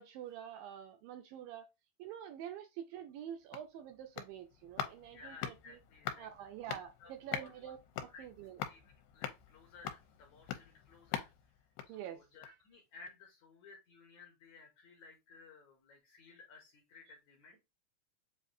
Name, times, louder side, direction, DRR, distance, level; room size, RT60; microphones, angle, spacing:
voice 1, 0.0-1.7 2.0-5.8 6.2-8.6 11.9-12.6, right 10 dB, 80° right, 2.1 m, -47 dB
sound 1, 3.1-12.7 13.0-13.1, left 9 dB, 85° left, 2.5 m, -45 dB
voice 2, 5.1-6.3 7.0-7.7 8.1-8.3 8.7-8.8 9.1-11.5 11.8-17.6, left 4 dB, 70° left, 2.0 m, -57 dB
7.3 x 2.6 x 2.6 m
omnidirectional pair, 4.3 m